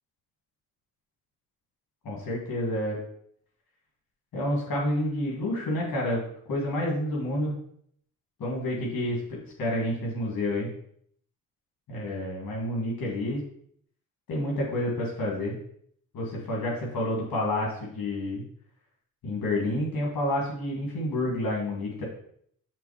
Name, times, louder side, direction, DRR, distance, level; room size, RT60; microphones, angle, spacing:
voice 1, 2.0-3.0 4.3-7.6 8.4-10.7 11.9-13.4 14.3-15.6 16.1-18.4 19.2-22.0, left 1 dB, 65° left, -3 dB, 2.4 m, -29 dB
6.1 x 4.1 x 5.0 m, 0.66 s
supercardioid pair, 60°, 37 cm